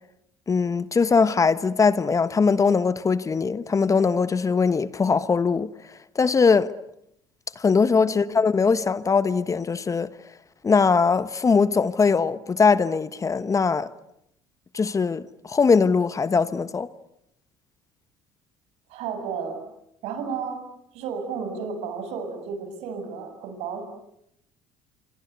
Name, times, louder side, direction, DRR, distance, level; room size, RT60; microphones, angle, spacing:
voice 1, 0.5-5.7 6.1-6.7 7.6-10.1 10.6-13.9 14.7-16.9, left 5 dB, 30° left, 1.2 m, -21 dB
voice 2, 18.9-19.6 20.0-20.6 20.9-23.8, right 6 dB, 70° right, 7.5 m, -32 dB
26.0 x 26.0 x 8.3 m
hypercardioid pair, 65°, 11 cm